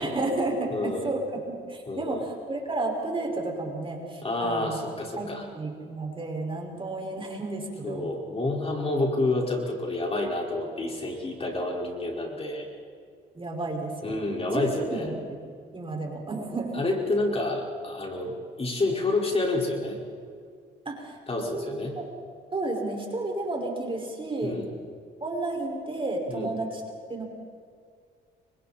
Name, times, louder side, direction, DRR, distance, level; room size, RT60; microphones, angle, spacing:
voice 1, 0.0-4.8 5.2-8.1 13.3-14.1 14.4-15.4 15.7-16.8 20.9-21.2 21.5-22.1 22.5-24.6 25.2-26.8 27.1-27.2, right 2 dB, 25° right, 1 dB, 5.4 m, -32 dB
voice 2, 0.7-1.1 1.9-2.2 4.2-5.4 7.8-12.7 14.0-15.1 16.7-20.0 21.3-22.0 24.4-24.7 26.3-26.5, left 2 dB, 30° left, -1 dB, 4.8 m, -29 dB
30.0 x 24.5 x 4.3 m, 2.1 s
cardioid pair, 90°, 20 cm